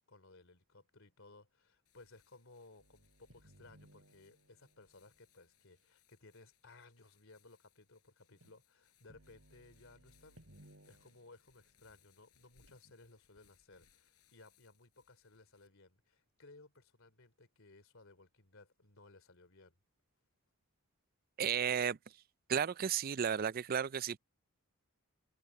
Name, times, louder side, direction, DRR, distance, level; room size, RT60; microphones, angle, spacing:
voice 1, 0.1-19.8, left 3 dB, 60° left, 3.4 m, -60 dB
sound 1, 1.9-15.7, left 8 dB, 90° left, 5.9 m, -73 dB
sound 2, 2.8-5.9 6.6-6.7 8.3-8.6 9.1-12.2 12.7-12.9, right 1 dB, 65° right, 4.5 m, -64 dB
voice 2, 21.4-22.0 22.5-24.2, right 8 dB, 40° right, 0.4 m, -33 dB
head